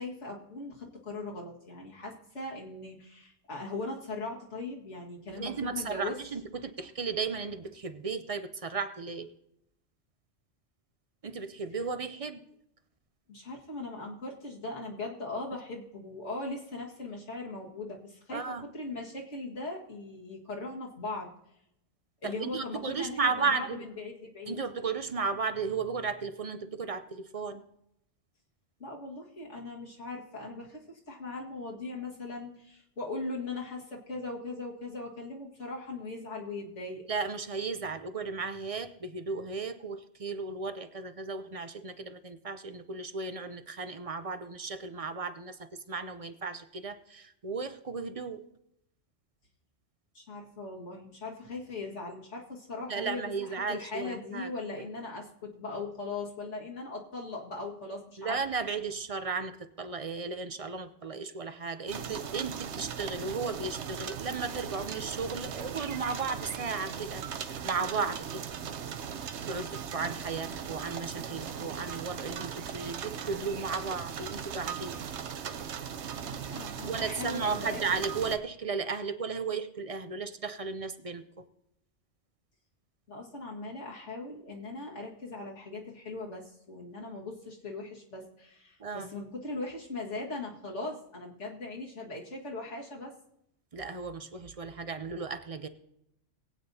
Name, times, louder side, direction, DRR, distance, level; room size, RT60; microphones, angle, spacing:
voice 1, 0.0-6.2 13.3-21.3 22.2-24.6 28.8-37.0 50.1-58.4 76.2-77.8 83.1-93.2, left 3 dB, 70° left, -3 dB, 2.2 m, -39 dB
voice 2, 5.3-9.3 11.2-12.4 18.3-18.6 22.2-23.8 24.5-27.6 37.1-48.4 52.9-54.5 58.2-67.2 67.6-68.4 69.5-75.0 76.9-81.2 88.8-89.1 93.7-95.7, right 4 dB, 40° right, 11 dB, 0.5 m, -35 dB
sound 1, 61.9-78.4, right 7 dB, 65° right, 1.0 m, -38 dB
21.0 x 8.8 x 2.8 m, 0.79 s
omnidirectional pair, 1.3 m